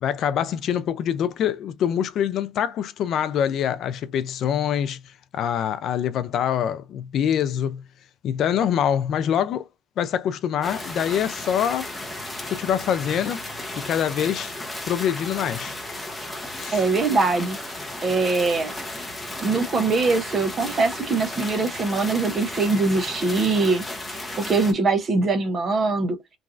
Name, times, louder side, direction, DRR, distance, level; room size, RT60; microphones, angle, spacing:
voice 1, 0.0-7.8 8.2-9.7 10.0-11.9 12.5-13.4 13.8-14.5 14.8-15.8 16.5-16.8, left 9 dB, 50° left, 0.3 m, -25 dB
sound 1, 10.6-24.7, left 1 dB, 5° left, 0.7 m, -34 dB
voice 2, 16.7-17.6 18.0-18.7 19.4-23.8 24.4-26.2, right 3 dB, 30° right, 0.6 m, -22 dB
3.0 x 2.4 x 2.4 m
cardioid pair, 150°, 0 cm